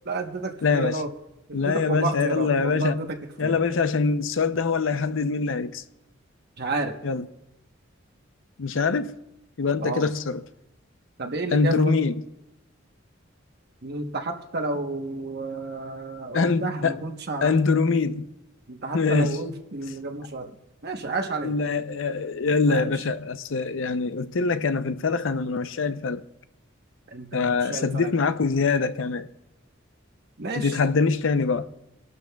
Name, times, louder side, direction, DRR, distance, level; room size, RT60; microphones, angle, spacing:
voice 1, 0.1-1.1 1.5-3.6 6.6-6.9 9.8-10.1 11.2-11.9 13.8-17.5 18.7-20.5 20.8-21.5 22.7-22.9 27.1-28.1 30.4-30.7, right 2 dB, 55° right, 1.0 m, -31 dB
voice 2, 0.6-1.0 1.5-3.0 3.4-5.8 7.0-7.3 8.6-9.2 9.6-10.4 11.5-12.2 16.3-17.0 17.4-18.3 18.9-19.4 21.4-26.2 27.3-29.3 30.5-31.7, left 4 dB, 70° left, 0.6 m, -24 dB
25.0 x 12.0 x 2.3 m
head